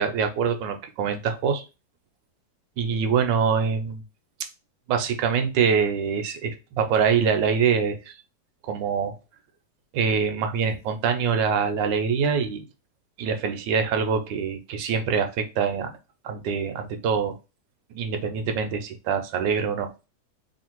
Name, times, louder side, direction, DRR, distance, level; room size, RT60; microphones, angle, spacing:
voice 1, 0.0-1.6 2.8-4.0 4.9-8.2 8.6-9.2 9.9-12.6 13.2-15.9 16.2-17.3 17.9-19.9, right 6 dB, 85° right, 6 dB, 1.3 m, -24 dB
3.3 x 2.5 x 4.4 m, 0.29 s
omnidirectional pair, 2.0 m